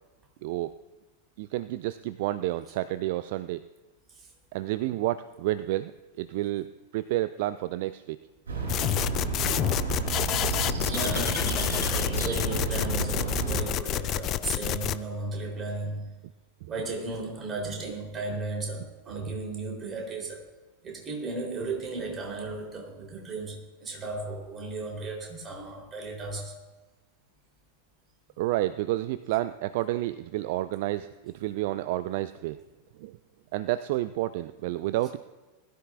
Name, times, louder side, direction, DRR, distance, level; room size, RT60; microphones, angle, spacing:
voice 1, 0.4-0.7 1.4-3.6 4.5-6.7 6.9-8.2 19.1-19.3 28.4-32.6 33.0-33.2 33.5-35.2, right 16 dB, 50° right, 0.3 m, -30 dB
sound 1, 8.5-13.7, right 5 dB, 65° right, 4.9 m, -31 dB
sound 2, 8.7-15.0, left 13 dB, 35° left, 0.4 m, -29 dB
voice 2, 10.9-16.1 16.7-20.5 20.8-26.6, right 2 dB, 20° right, 3.5 m, -35 dB
21.0 x 13.0 x 2.4 m
figure-of-eight pair, 90°, 0 cm